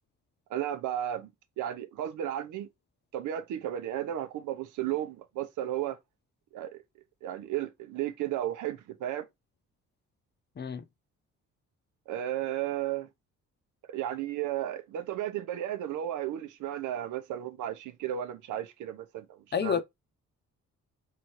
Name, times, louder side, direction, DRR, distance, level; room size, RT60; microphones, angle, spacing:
voice 1, 0.5-1.3 1.6-2.7 3.1-6.0 6.5-6.8 7.2-9.2 12.1-13.1 13.9-19.8, right 11 dB, 85° right, 0.8 m, -34 dB
voice 2, 19.5-19.8, left 7 dB, 35° left, 0.7 m, -29 dB
3.4 x 3.2 x 4.4 m
cardioid pair, 90°, 30 cm